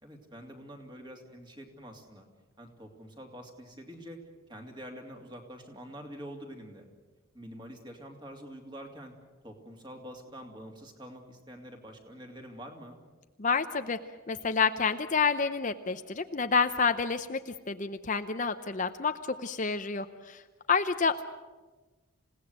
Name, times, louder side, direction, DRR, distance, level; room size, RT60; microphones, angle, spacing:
voice 1, 0.0-2.3 2.6-4.2 4.5-6.9 7.3-9.1 9.4-13.0, equal, 20° right, 3 dB, 2.7 m, -46 dB
voice 2, 13.4-14.0 14.3-20.4 20.7-21.2, left 5 dB, 35° left, 8 dB, 0.7 m, -29 dB
28.0 x 17.5 x 8.0 m, 1.3 s
head